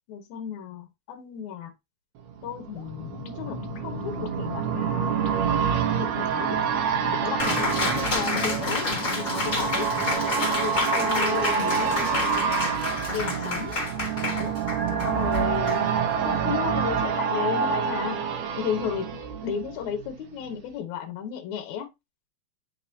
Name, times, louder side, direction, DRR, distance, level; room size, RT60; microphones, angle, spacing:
voice 1, 0.1-1.7 2.4-5.3 6.0-6.7 7.1-9.9 10.2-12.6 13.1-13.7 14.3-14.6 14.9-15.9 16.2-18.2 18.6-19.1 19.4-21.9, left 8 dB, 65° left, 2.2 m, -33 dB
sound 1, 2.3-20.1 20.4-20.5, right 7 dB, 85° right, 1.5 m, -27 dB
sound 2, 2.8-10.4, left 11 dB, 85° left, 1.5 m, -41 dB
Cheering, 7.4-16.3, left 2 dB, 25° left, 2.1 m, -30 dB
9.7 x 4.0 x 2.7 m
omnidirectional pair, 4.2 m